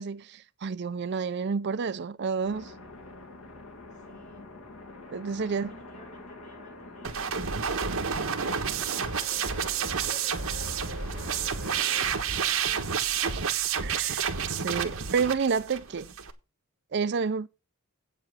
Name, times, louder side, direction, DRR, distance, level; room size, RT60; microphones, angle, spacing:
voice 1, 0.0-2.7 5.1-5.7 13.2-13.4 13.8-14.2 14.5-16.1 16.9-17.5, right 5 dB, 50° right, 0.5 m, -29 dB
sound 1, 2.4-13.1 14.8-15.1 15.9-16.2, left 2 dB, 80° left, 2.5 m, -46 dB
voice 2, 3.9-4.5 5.3-9.5 9.8-11.4 12.4-13.1, equal, 35° left, 7.1 m, -54 dB
sound 2, 7.0-16.3, right 7 dB, 70° right, 1.3 m, -30 dB
8.5 x 7.6 x 6.0 m
head